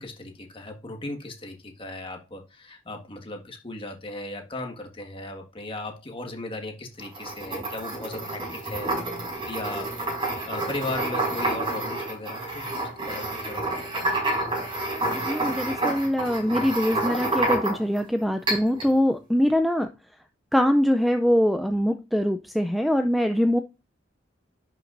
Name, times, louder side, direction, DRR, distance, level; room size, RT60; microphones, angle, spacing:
voice 1, 0.0-8.9 9.5-10.2 10.5-13.7 14.0-14.2, left 2 dB, 30° left, 1.5 m, -37 dB
sound 1, 7.0-18.0 18.5-18.9, right 2 dB, 30° right, 5.0 m, -29 dB
voice 2, 15.1-19.9 20.5-23.6, equal, ahead, 0.3 m, -23 dB
11.0 x 6.0 x 2.5 m
head